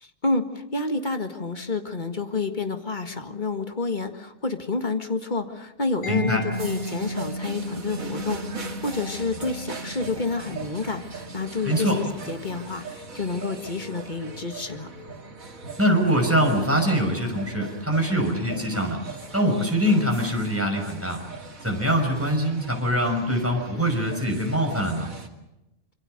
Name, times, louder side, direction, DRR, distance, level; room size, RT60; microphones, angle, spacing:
voice 1, 0.0-14.9, left 3 dB, 35° left, 6 dB, 1.8 m, -29 dB
Mallet percussion, 6.0-13.6, right 1 dB, 65° left, 4.5 m, -37 dB
voice 2, 6.1-6.4 11.7-12.0 15.8-19.0 19.3-21.2 21.6-25.1, equal, 10° right, 2 dB, 5.6 m, -23 dB
sound 1, 6.5-25.3, right 3 dB, 80° right, 2.8 m, -40 dB
26.0 x 24.5 x 6.6 m, 0.94 s
omnidirectional pair, 1.4 m